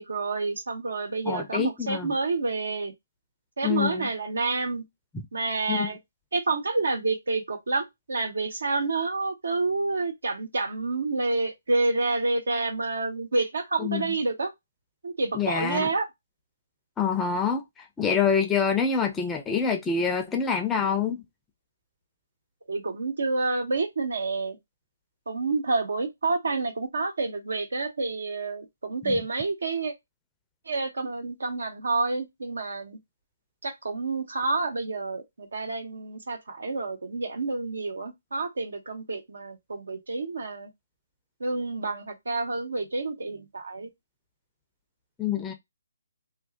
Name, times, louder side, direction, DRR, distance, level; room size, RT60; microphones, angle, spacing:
voice 1, 0.0-2.9 3.6-4.8 5.3-6.0 6.3-14.5 15.0-16.1 22.7-24.6 25.3-29.9 30.7-33.0 33.6-40.7 41.4-43.9, right 3 dB, 75° right, 1.3 m, -28 dB
voice 2, 1.3-2.1 3.6-4.1 5.7-5.9 13.8-14.1 15.3-15.9 17.0-17.6 18.0-21.2 29.0-29.2 45.2-45.5, left 6 dB, 10° left, 0.5 m, -26 dB
2.5 x 2.4 x 3.5 m
hypercardioid pair, 150°, 0 cm